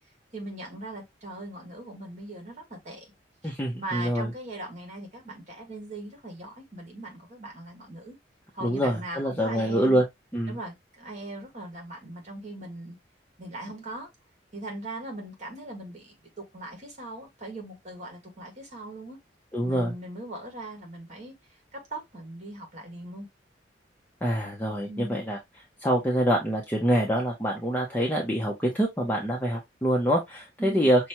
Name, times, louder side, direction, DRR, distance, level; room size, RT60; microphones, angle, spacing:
voice 1, 0.3-3.1 3.4-3.5 3.8-8.2 8.5-10.0 10.5-13.0 13.4-14.1 14.5-19.2 19.6-21.3 21.7-23.3 24.9-25.2 30.6-30.9, right 1 dB, 40° right, 1.7 m, -40 dB
voice 2, 3.4-4.3 8.6-10.0 10.3-10.6 19.5-19.9 24.2-25.4 25.8-31.1, equal, 10° left, 0.7 m, -25 dB
5.8 x 2.3 x 2.8 m
head